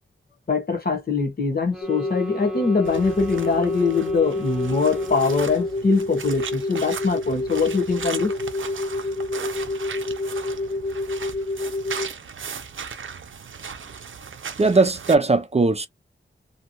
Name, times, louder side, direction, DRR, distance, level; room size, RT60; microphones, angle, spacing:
voice 1, 0.5-8.3, left 4 dB, 50° left, 1.0 m, -23 dB
sound 1, 1.7-5.9, right 1 dB, 5° right, 0.9 m, -39 dB
sound 2, 1.8-12.1, left 2 dB, 30° left, 0.6 m, -28 dB
sound 3, 2.8-15.2, right 6 dB, 80° right, 0.6 m, -37 dB
voice 2, 14.6-15.9, right 3 dB, 30° right, 0.4 m, -19 dB
2.7 x 2.2 x 2.8 m
wide cardioid pair, 75°, 20 cm